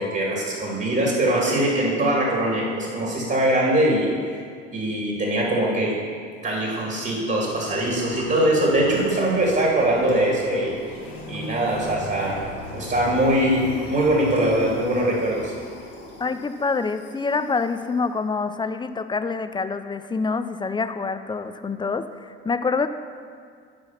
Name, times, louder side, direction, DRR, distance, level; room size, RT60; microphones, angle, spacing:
voice 1, 0.0-4.4 4.7-6.0 6.4-10.7 11.3-12.4 12.7-15.5, right 1 dB, 35° right, -2 dB, 2.5 m, -22 dB
sound 1, 7.3-17.8, left 2 dB, 65° left, 2.9 m, -39 dB
voice 2, 16.2-22.9, left 4 dB, 15° left, 10 dB, 0.5 m, -26 dB
12.5 x 4.8 x 5.8 m, 2.1 s
hypercardioid pair, 60°, 30 cm